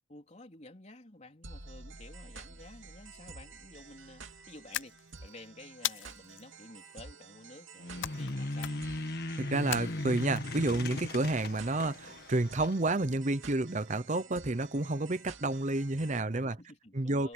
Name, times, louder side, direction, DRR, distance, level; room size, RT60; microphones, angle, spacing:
voice 1, 0.1-8.8 16.4-17.3, left 2 dB, 35° left, 3.8 m, -52 dB
sound 1, 1.4-16.2, right 4 dB, 90° right, 2.7 m, -51 dB
fish slap ground or snow writhing wet, 4.7-5.3 5.8-6.4 8.0-8.3 8.6-9.0 9.7-10.4, left 12 dB, 70° left, 0.5 m, -37 dB
sound 2, 7.8-12.8, left 2 dB, 55° left, 1.9 m, -38 dB
voice 2, 9.4-16.6 16.9-17.3, right 2 dB, 40° right, 0.8 m, -30 dB
head